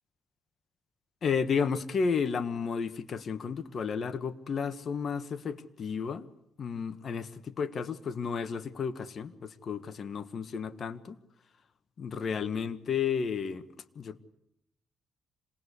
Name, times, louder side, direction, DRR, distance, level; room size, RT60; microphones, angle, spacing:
voice 1, 1.2-6.3 6.6-11.2 12.0-13.7 13.9-14.2, left 6 dB, 50° left, 1.4 m, -32 dB
26.5 x 19.0 x 8.3 m
cardioid pair, 90°, 0 cm